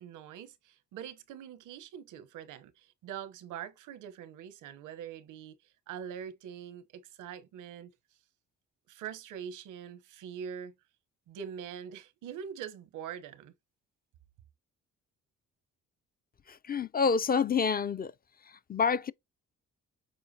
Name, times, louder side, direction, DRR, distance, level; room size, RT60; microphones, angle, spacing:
voice 1, 0.0-7.9 8.9-10.7 11.3-13.5, right 8 dB, 85° right, 1.0 m, -43 dB
voice 2, 16.7-18.1 18.7-19.1, left 5 dB, 30° left, 0.5 m, -27 dB
7.7 x 4.4 x 2.8 m
cardioid pair, 90°, 30 cm